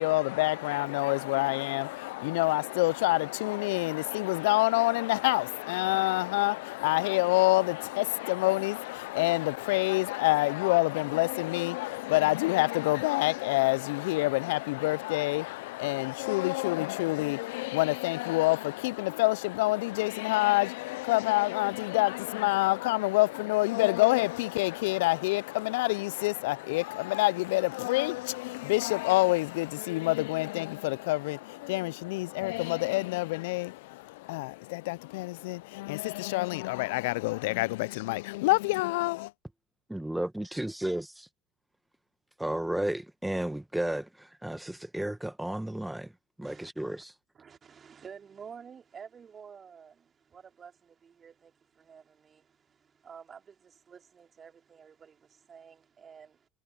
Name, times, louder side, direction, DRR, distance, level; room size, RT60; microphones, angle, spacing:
voice 1, 0.0-39.3, left 21 dB, 70° left, 0.6 m, -27 dB
voice 2, 39.9-41.3 42.4-46.1 46.4-47.1, right 1 dB, 5° right, 1.4 m, -33 dB
voice 3, 46.4-46.7 47.3-56.5, right 7 dB, 35° right, 3.7 m, -51 dB
hypercardioid pair, 75°, 0 cm